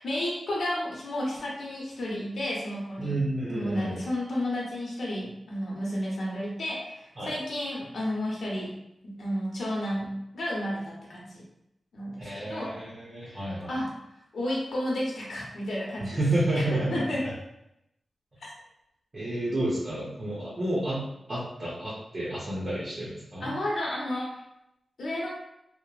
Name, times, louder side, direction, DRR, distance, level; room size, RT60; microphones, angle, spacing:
voice 1, 0.0-3.2 3.5-8.7 9.0-11.4 11.9-12.8 13.3-13.9 14.3-16.2 16.5-17.3 23.4-24.4 25.0-25.3, left 1 dB, 75° left, -5 dB, 0.8 m, -32 dB
voice 2, 3.0-4.0 7.2-7.4 12.2-13.8 16.0-17.0 19.1-21.0 21.3-23.6, right 1 dB, 30° right, -8 dB, 0.7 m, -30 dB
2.9 x 2.0 x 2.3 m, 0.82 s
wide cardioid pair, 165°, 0 cm